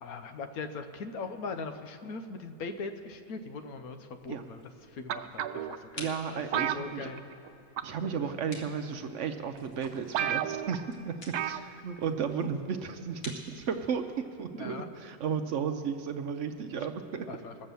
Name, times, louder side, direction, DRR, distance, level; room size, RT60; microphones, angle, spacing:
voice 1, 0.0-4.6 5.0-7.2 14.6-14.9 17.3-17.5, left 4 dB, 75° left, 7 dB, 1.2 m, -40 dB
sound 1, 4.2-14.0, left 1 dB, 40° left, 1.9 m, -51 dB
sound 2, 5.1-5.8 6.5-7.5 7.8-8.1 8.9-9.0 9.6-9.7 9.8-9.9 10.1-10.8 11.3-11.7 12.0-12.1, right 10 dB, 90° right, 1.1 m, -32 dB
voice 2, 5.9-7.1 7.8-17.3, right 6 dB, 65° right, 7 dB, 0.9 m, -34 dB
19.0 x 7.6 x 6.8 m, 2.8 s
omnidirectional pair, 1.6 m